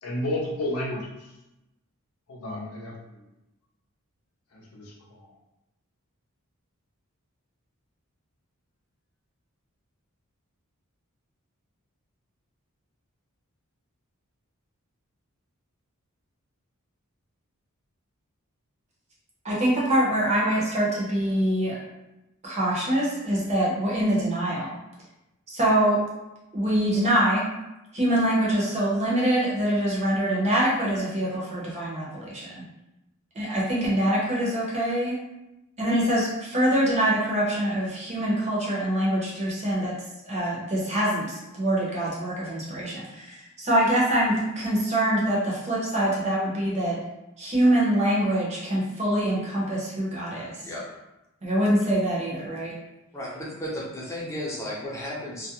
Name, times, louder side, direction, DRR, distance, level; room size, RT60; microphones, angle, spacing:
voice 1, 0.0-1.3 2.3-3.2 4.5-5.3, left 1 dB, 80° left, -2 dB, 0.6 m, -32 dB
voice 2, 19.4-21.8 22.4-24.7 25.5-26.0 26.5-27.5 27.9-32.6 33.4-35.1 35.8-39.9 40.2-47.0 47.4-50.5 51.4-52.7, right 1 dB, 30° right, -5 dB, 0.7 m, -24 dB
voice 3, 53.1-55.5, left 1 dB, 15° left, -6 dB, 0.6 m, -34 dB
2.3 x 2.0 x 2.8 m, 0.94 s
head